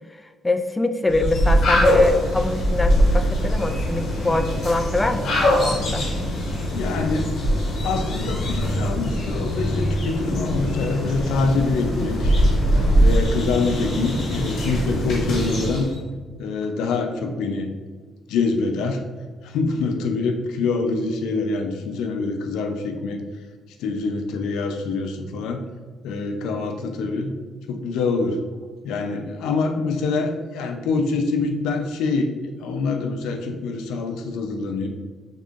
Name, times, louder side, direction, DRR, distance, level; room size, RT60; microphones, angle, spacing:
voice 1, 0.4-6.1, left 2 dB, 15° left, 9 dB, 0.4 m, -23 dB
sound 1, 1.1-16.0, equal, 65° left, 1.5 m, -22 dB
voice 2, 6.7-7.3 7.8-12.3 13.0-15.9 16.4-17.7 18.3-19.0 19.4-23.2 23.8-25.6 26.0-27.4 27.7-28.4 28.8-34.9, left 4 dB, 90° left, 5 dB, 0.5 m, -25 dB
5.4 x 3.7 x 2.5 m, 1.5 s
cardioid pair, 90°, 0 cm